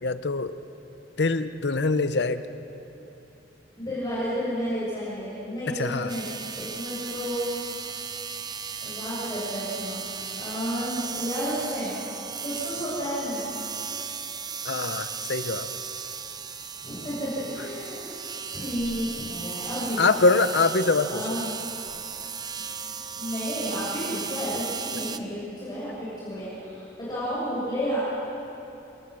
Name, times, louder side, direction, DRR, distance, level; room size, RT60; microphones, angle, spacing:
voice 1, 0.0-0.5 1.2-2.4 5.7-6.1 14.6-15.7 20.0-21.3 25.1-25.2, left 3 dB, 65° left, 11 dB, 0.8 m, -24 dB
voice 2, 3.8-6.2 6.6-7.5 8.8-10.0 10.3-11.9 12.4-13.4 16.8-18.2 18.5-20.2 21.0-21.4 23.1-28.0, equal, 25° left, -9 dB, 6.8 m, -31 dB
sound 1, 6.1-25.2, right 6 dB, 25° right, 0.7 m, -36 dB
27.5 x 19.5 x 6.3 m, 2.9 s
head